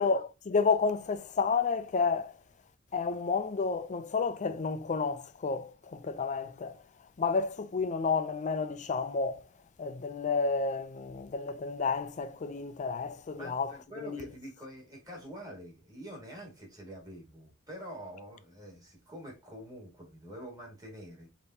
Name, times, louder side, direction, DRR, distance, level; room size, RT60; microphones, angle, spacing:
voice 1, 0.0-2.3 2.9-6.8 7.2-9.4 9.8-13.7 14.0-14.2, left 4 dB, 35° left, 0.4 m, -30 dB
voice 2, 13.3-21.3, equal, 20° right, 2.0 m, -46 dB
5.1 x 3.0 x 2.7 m
head